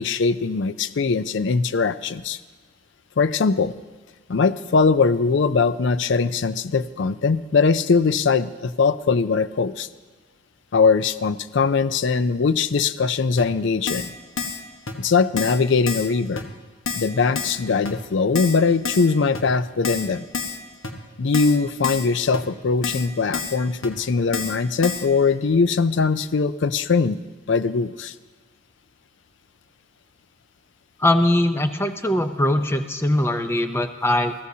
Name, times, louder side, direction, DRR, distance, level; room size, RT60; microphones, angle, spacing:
voice 1, 0.0-2.4 3.2-3.7 4.3-9.9 10.7-14.1 15.0-16.4 17.0-20.2 21.2-27.2 27.5-28.1, left 4 dB, 60° left, 14 dB, 0.4 m, -21 dB
Keyboard (musical), 13.4-13.5 13.9-14.1 14.4-14.6 14.9-15.0 15.4-15.6 15.9-16.1 16.4-16.5 16.9-17.1 17.4-17.6 17.9-18.0 18.4-18.6 18.9-19.1 19.3-19.4 19.8-20.1 20.3-20.6 20.8-20.9 21.3-21.6 21.8-22.1 22.3-22.4 22.8-23.1 23.3-23.6 23.8-23.9 24.3-24.6 24.8-25.1, left 5 dB, 80° left, 1.3 m, -28 dB
voice 2, 31.0-34.3, left 1 dB, 10° left, 8 dB, 0.6 m, -21 dB
22.5 x 14.5 x 2.8 m, 1.4 s
head